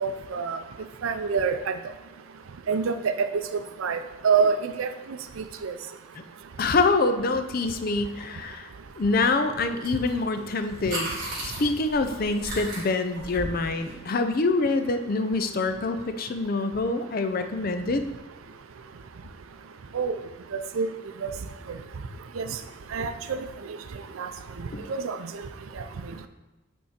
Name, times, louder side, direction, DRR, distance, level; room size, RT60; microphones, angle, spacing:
voice 1, 0.0-0.6 1.0-1.8 2.7-3.3 3.8-4.9 5.4-5.7 19.9-20.1 20.5-20.9 21.2-21.3 21.7-21.8 22.4-22.6 22.9-23.4 24.2-24.3 24.6-24.7 25.0-25.3, right 5 dB, 80° right, 9 dB, 0.5 m, -26 dB
voice 2, 6.6-8.7 9.0-11.1 11.4-18.0 24.7-24.8, left 3 dB, 45° left, 8 dB, 0.4 m, -25 dB
sound 1, 9.8-10.1 10.4-13.9, right 1 dB, 45° right, 2.1 m, -35 dB
8.4 x 3.5 x 4.3 m, 1.1 s
head